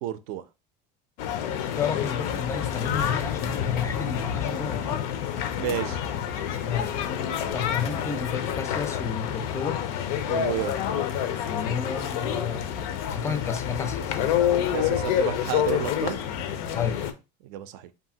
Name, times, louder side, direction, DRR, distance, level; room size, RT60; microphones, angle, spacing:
voice 1, 0.0-0.4 5.6-6.0 10.3-10.7 14.7-16.2 17.4-17.9, right 11 dB, 70° right, 0.4 m, -31 dB
sound 1, 1.2-17.1, left 9 dB, 70° left, 0.5 m, -28 dB
voice 2, 1.7-5.1 6.6-7.0 7.5-9.9 11.5-12.7 13.1-14.2 16.7-17.1, left 6 dB, 15° left, 0.4 m, -31 dB
2.8 x 2.4 x 2.7 m
supercardioid pair, 145°, 21 cm